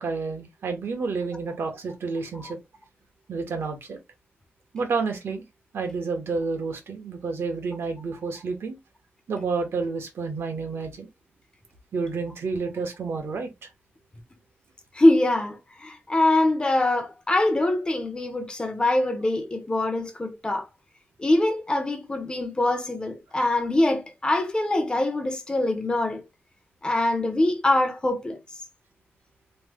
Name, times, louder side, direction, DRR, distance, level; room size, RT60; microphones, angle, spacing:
voice 1, 0.0-2.6 3.3-4.0 4.7-5.4 5.7-8.8 9.3-11.1 11.9-13.7, right 4 dB, 80° right, 1.0 m, -30 dB
voice 2, 14.9-20.7 21.2-26.2 26.8-28.4, left 2 dB, 20° left, 0.7 m, -23 dB
3.1 x 2.1 x 3.6 m
wide cardioid pair, 135°, 4 cm